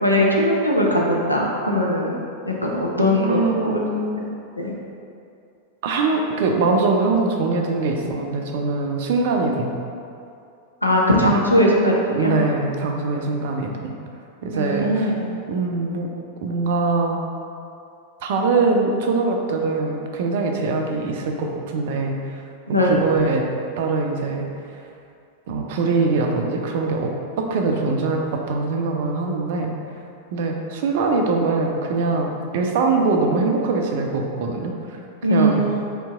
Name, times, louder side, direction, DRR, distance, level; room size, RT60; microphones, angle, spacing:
voice 1, 0.0-2.2 2.4-3.8 4.2-4.3 4.6-4.7 10.8-12.3 14.5-15.3 22.7-23.0 35.2-35.8, equal, 90° left, -2 dB, 0.5 m, -20 dB
voice 2, 3.0-4.1 5.8-9.7 12.1-13.9 14.4-15.1 15.5-16.1 16.4-17.2 18.2-22.3 22.7-23.4 23.8-24.5 25.5-29.7 30.3-35.0 35.3-35.6, right 3 dB, 55° right, 2 dB, 0.4 m, -22 dB
4.3 x 2.8 x 2.3 m, 2.5 s
figure-of-eight pair, 90°, 0 cm